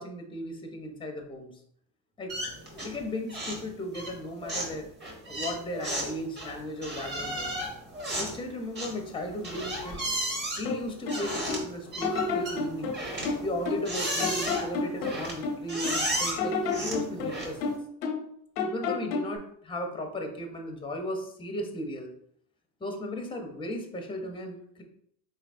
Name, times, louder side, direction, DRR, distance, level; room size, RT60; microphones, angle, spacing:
voice 1, 0.0-1.5 2.2-2.3 2.8-4.9 5.3-7.5 8.2-10.0 10.6-13.0 13.4-17.6 18.6-22.1 22.8-24.8, left 1 dB, 10° left, 3 dB, 0.8 m, -36 dB
sound 1, 2.3-3.0 3.3-3.7 3.9-17.7, right 1 dB, 20° right, 1.4 m, -34 dB
sound 2, 10.6-11.7 12.0-13.9 14.2-16.0 16.4-18.3 18.6-19.4, left 4 dB, 85° left, 0.9 m, -31 dB
4.0 x 3.2 x 2.6 m, 0.68 s
supercardioid pair, 85°, 46 cm